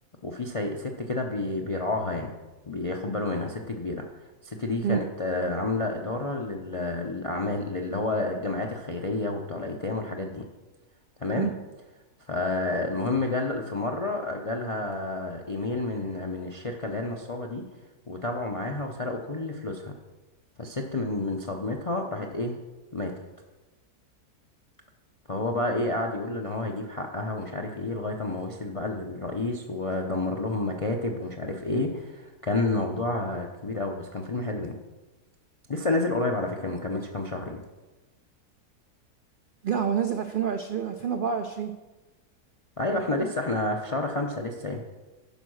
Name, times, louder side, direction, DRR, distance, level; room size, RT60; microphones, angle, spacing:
voice 1, 0.2-2.3 2.7-4.1 4.4-10.4 11.2-11.5 12.3-17.6 18.1-19.9 20.6-22.6 22.9-23.1 25.3-34.7 35.7-37.6 42.8-44.8, left 2 dB, 50° left, 2 dB, 0.4 m, -30 dB
voice 2, 39.6-41.7, right 7 dB, 85° right, 6 dB, 0.4 m, -27 dB
10.5 x 4.7 x 6.3 m, 1.2 s
omnidirectional pair, 1.6 m